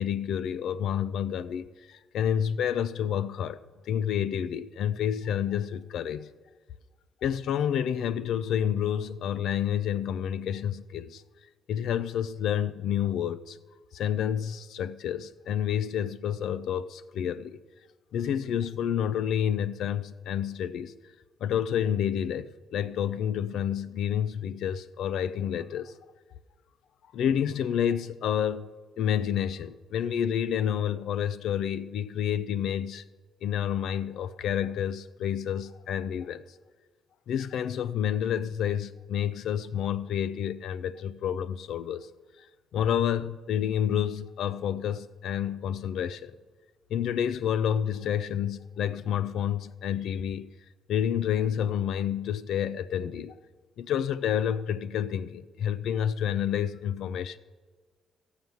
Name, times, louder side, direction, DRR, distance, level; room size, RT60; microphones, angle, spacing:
voice 1, 0.0-3.6 3.9-6.3 7.2-11.2 11.7-13.6 13.9-17.6 18.1-20.9 21.4-25.9 27.1-28.7 29.0-33.0 33.4-36.4 37.3-42.1 42.4-42.5 42.7-46.4 46.9-50.5 50.9-53.4 53.8-57.4, left 9 dB, 75° left, 0.4 m, -29 dB
15.5 x 5.6 x 7.8 m
cardioid pair, 90°, 0 cm